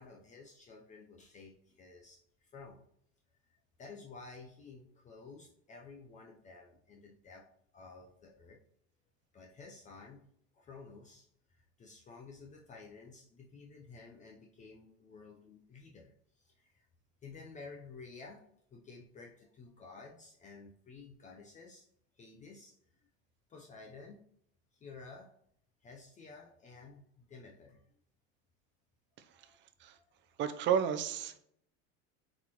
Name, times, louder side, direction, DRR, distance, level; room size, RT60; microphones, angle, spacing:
voice 1, 0.0-2.2 2.5-2.9 3.8-7.5 7.7-8.6 9.3-10.2 10.5-11.3 11.8-16.8 17.2-18.4 18.7-21.9 22.1-22.7 23.5-24.2 24.8-25.3 25.8-27.8 29.4-29.6, left 4 dB, 25° left, 0 dB, 0.7 m, -52 dB
voice 2, 30.4-31.4, right 8 dB, 35° right, 10 dB, 0.7 m, -31 dB
7.9 x 4.3 x 3.0 m, 0.69 s
supercardioid pair, 145°, 31 cm